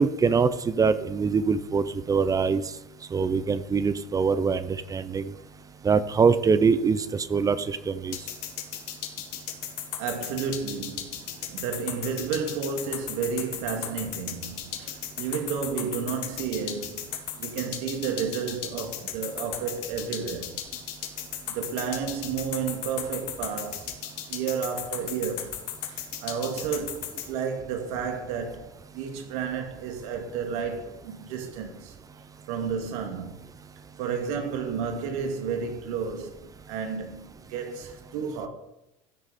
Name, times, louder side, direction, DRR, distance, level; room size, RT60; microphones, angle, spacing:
voice 1, 0.0-2.6 3.1-5.3 5.8-8.2, right 5 dB, 20° right, 0.6 m, -23 dB
sound 1, 8.1-27.3, left 11 dB, 60° left, 1.8 m, -35 dB
voice 2, 10.0-11.2 11.5-17.1 17.4-20.6 21.5-23.9 24.3-25.5 25.9-31.9 32.5-33.4 34.0-38.5, right 6 dB, 75° right, 2.4 m, -32 dB
14.5 x 6.5 x 4.2 m
supercardioid pair, 130°, 18 cm